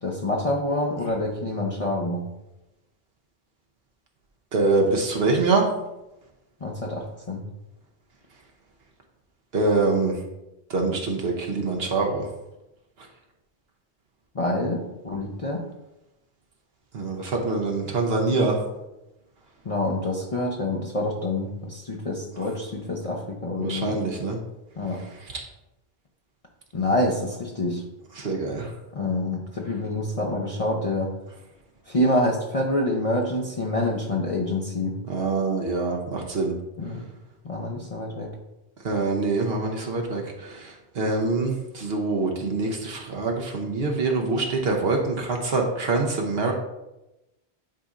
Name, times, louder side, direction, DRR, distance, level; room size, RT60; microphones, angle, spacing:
voice 1, 0.0-2.2 6.6-7.4 14.3-15.6 19.6-24.0 24.8-25.0 26.7-27.8 28.9-31.1 31.9-35.0 36.8-37.0 37.4-38.3, left 1 dB, 40° left, -2 dB, 0.7 m, -27 dB
voice 2, 4.5-5.6 9.5-10.1 10.7-12.3 16.9-18.6 23.6-24.4 28.2-28.7 35.1-36.5 38.8-40.7 41.0-46.5, right 3 dB, 70° right, 1 dB, 1.1 m, -24 dB
10.0 x 4.1 x 2.5 m, 0.96 s
omnidirectional pair, 1.1 m